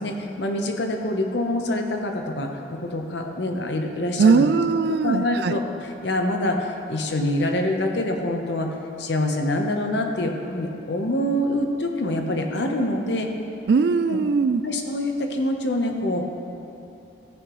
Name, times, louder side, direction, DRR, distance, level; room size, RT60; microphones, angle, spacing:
voice 1, 0.0-4.5 4.9-8.7 9.0-13.3 14.1-14.2 14.6-16.2, left 1 dB, 65° left, 3 dB, 0.9 m, -25 dB
voice 2, 4.2-5.5 13.7-14.6, right 4 dB, 55° right, 12 dB, 0.3 m, -19 dB
14.0 x 9.8 x 3.1 m, 2.9 s
head